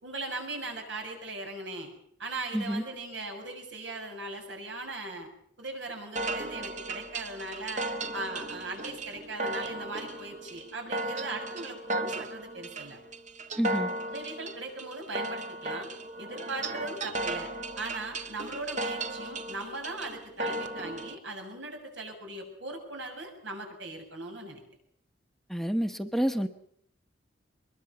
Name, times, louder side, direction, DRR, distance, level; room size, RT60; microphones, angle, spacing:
voice 1, 0.0-1.9 2.2-5.3 5.6-7.8 8.1-13.0 14.0-15.9 16.2-17.5 17.8-24.6, right 2 dB, 85° right, 3 dB, 7.3 m, -39 dB
voice 2, 2.5-2.8 13.6-13.9 25.5-26.5, equal, ahead, 7 dB, 1.0 m, -28 dB
sound 1, 6.2-21.2, right 2 dB, 40° right, 1.5 m, -36 dB
23.5 x 21.5 x 7.0 m, 0.65 s
head